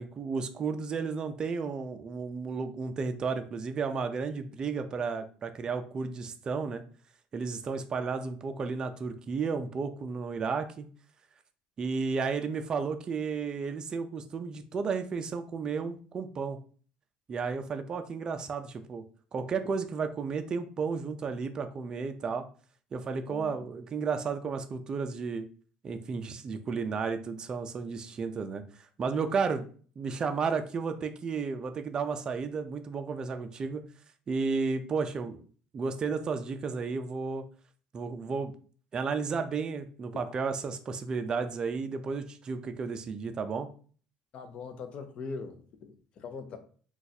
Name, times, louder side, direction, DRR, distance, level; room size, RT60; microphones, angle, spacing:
voice 1, 0.0-6.8 7.3-10.9 11.8-16.6 17.3-19.0 19.3-22.5 22.9-25.5 25.8-28.6 29.0-29.7 30.0-33.8 34.3-35.4 35.7-37.4 37.9-38.5 38.9-43.7, right 5 dB, 30° right, 7 dB, 0.4 m, -33 dB
voice 2, 44.3-46.6, left 4 dB, 45° left, 8 dB, 0.5 m, -41 dB
2.5 x 2.3 x 4.0 m, 0.43 s
cardioid pair, 125°, 3 cm